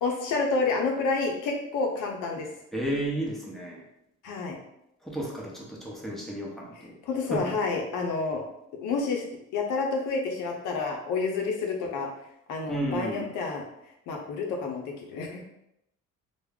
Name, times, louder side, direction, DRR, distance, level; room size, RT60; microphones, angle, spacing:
voice 1, 0.0-2.5 4.2-4.6 6.8-8.4 8.8-9.3 9.5-12.1 12.5-13.6 14.1-15.5, left 4 dB, 90° left, 2 dB, 0.6 m, -29 dB
voice 2, 2.7-3.8 5.0-6.9 7.3-7.5 12.7-13.3, right 1 dB, ahead, -3 dB, 0.7 m, -33 dB
2.3 x 2.0 x 3.5 m, 0.81 s
cardioid pair, 90°, 30 cm